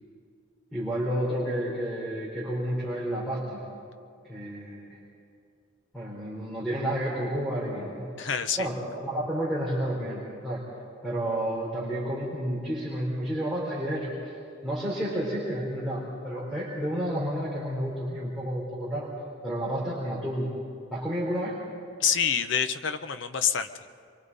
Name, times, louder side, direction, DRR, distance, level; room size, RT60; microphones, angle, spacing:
voice 1, 0.7-3.6 4.2-5.0 5.9-8.1 8.6-8.8 9.0-10.6 11.0-14.1 14.6-19.1 19.4-20.5 20.9-21.6, right 1 dB, ahead, -7 dB, 3.7 m, -30 dB
voice 2, 8.2-8.6 22.0-23.7, left 7 dB, 65° left, 9 dB, 0.8 m, -26 dB
28.0 x 23.5 x 4.1 m, 2.4 s
head